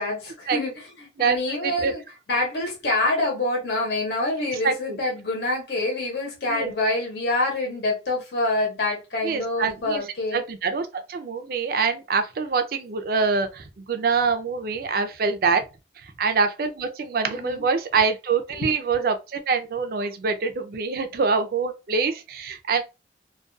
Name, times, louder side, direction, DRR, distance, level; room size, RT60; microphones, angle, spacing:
voice 1, 0.0-2.0 2.3-10.4 17.3-17.6 17.9-18.0 18.5-18.7, left 2 dB, 65° left, 0.8 m, -26 dB
voice 2, 1.2-1.9 4.4-5.0 6.5-6.7 9.2-10.0 10.3-15.7 16.2-22.8, right 5 dB, 55° right, 0.4 m, -25 dB
2.3 x 2.2 x 2.5 m
head